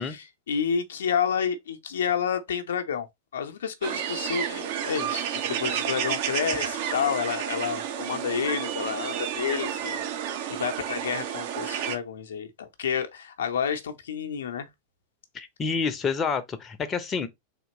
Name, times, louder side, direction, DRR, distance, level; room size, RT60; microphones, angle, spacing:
voice 1, 0.0-3.1 3.3-14.7, left 7 dB, 65° left, 0.6 m, -30 dB
sound 1, 3.8-12.0, right 9 dB, 50° right, 0.7 m, -31 dB
voice 2, 15.3-17.3, left 5 dB, 25° left, 0.6 m, -28 dB
3.6 x 2.8 x 3.9 m
figure-of-eight pair, 90°, 0 cm